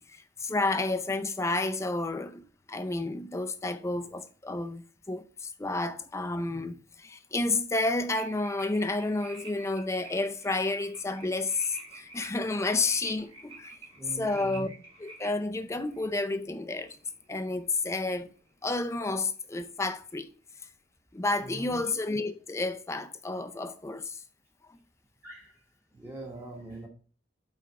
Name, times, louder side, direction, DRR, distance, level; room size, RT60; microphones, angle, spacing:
voice 1, 0.0-13.7 14.1-14.7 15.0-17.0 17.3-18.3 18.6-20.3 21.1-24.2, left 2 dB, 15° left, 0.4 m, -31 dB
sound 1, 8.1-18.4 18.6-19.0, right 3 dB, 30° right, 2.2 m, -50 dB
voice 2, 13.9-14.7 21.4-21.8 25.2-25.6 25.9-26.9, right 2 dB, 15° right, 1.2 m, -43 dB
5.9 x 4.3 x 5.8 m
head